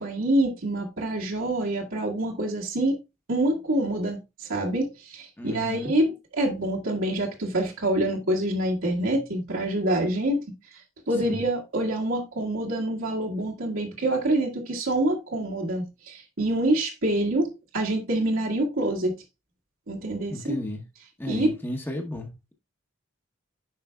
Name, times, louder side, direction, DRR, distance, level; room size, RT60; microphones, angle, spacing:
voice 1, 0.0-3.0 3.3-10.4 11.1-19.2 19.9-20.6 21.3-21.6, right 1 dB, 80° right, 1.8 m, -26 dB
voice 2, 5.4-6.0 11.2-11.4 20.3-20.8 21.2-22.5, left 1 dB, 10° left, 0.9 m, -33 dB
9.2 x 5.6 x 2.3 m
head